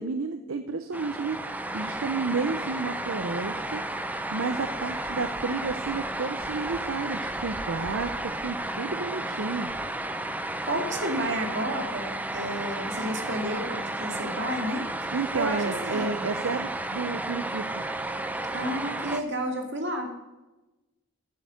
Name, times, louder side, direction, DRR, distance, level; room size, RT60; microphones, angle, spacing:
voice 1, 0.0-1.4 1.7-3.8 4.3-9.7 15.1-17.8, right 4 dB, 70° right, 8 dB, 0.6 m, -31 dB
sound 1, 0.9-19.2, right 2 dB, 5° right, 0.6 m, -33 dB
voice 2, 10.7-16.3 18.5-20.1, right 1 dB, 50° right, 4 dB, 2.0 m, -31 dB
9.6 x 8.0 x 6.4 m, 1.1 s
head